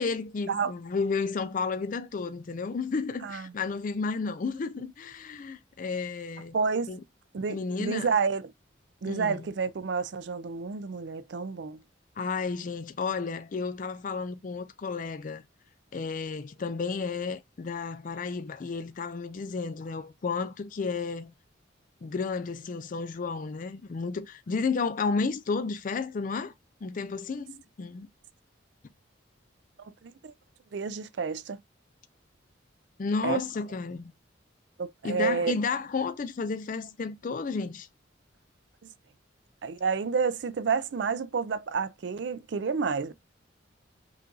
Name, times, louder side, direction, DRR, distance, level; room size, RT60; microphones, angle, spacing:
voice 1, 0.0-6.6 6.9-7.0 7.5-8.1 9.1-9.5 12.2-15.4 15.9-21.3 22.0-26.5 26.8-28.1 33.0-34.1 35.0-37.9, left 4 dB, 45° left, 0.4 m, -32 dB
voice 2, 6.5-6.9 7.3-8.5 9.0-11.8 30.0-30.3 30.7-31.6 33.2-33.4 34.8-35.6 39.6-43.1, right 5 dB, 60° right, 0.4 m, -29 dB
5.5 x 2.4 x 3.8 m
head